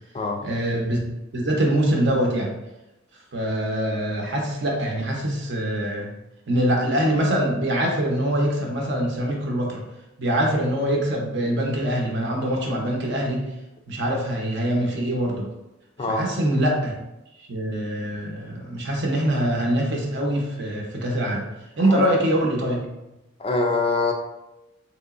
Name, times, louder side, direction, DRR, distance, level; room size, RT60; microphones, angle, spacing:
voice 1, 0.4-1.0 1.3-2.5 3.3-6.1 6.5-9.8 10.2-13.4 13.9-15.5 16.1-16.9 17.5-21.5 21.8-22.8, right 1 dB, 60° right, -1 dB, 0.8 m, -24 dB
voice 2, 23.4-24.1, left 3 dB, 30° left, 3 dB, 0.3 m, -23 dB
3.7 x 3.0 x 2.4 m, 0.94 s
head